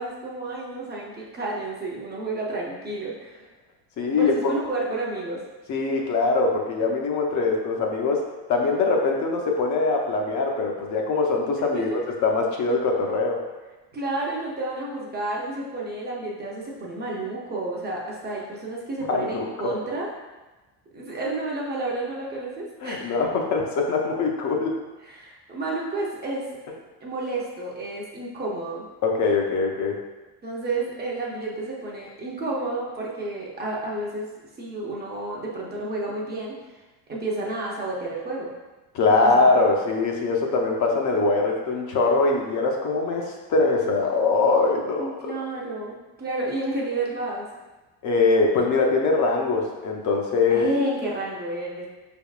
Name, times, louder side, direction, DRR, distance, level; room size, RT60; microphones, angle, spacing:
voice 1, 0.0-3.5 4.2-5.4 11.7-12.0 13.9-20.1 20.9-23.2 25.0-26.4 27.0-28.8 30.4-34.3 34.6-36.6 37.1-38.5 39.2-39.4 45.0-47.5 50.5-51.9, right 2 dB, 20° right, -3 dB, 0.5 m, -30 dB
voice 2, 4.0-4.5 5.7-8.2 8.5-11.9 12.2-13.4 19.1-19.5 22.8-24.7 29.0-30.0 38.9-45.3 48.0-50.7, left 3 dB, 40° left, 0 dB, 0.5 m, -22 dB
4.9 x 3.5 x 2.3 m, 1.2 s
cardioid pair, 145°, 46 cm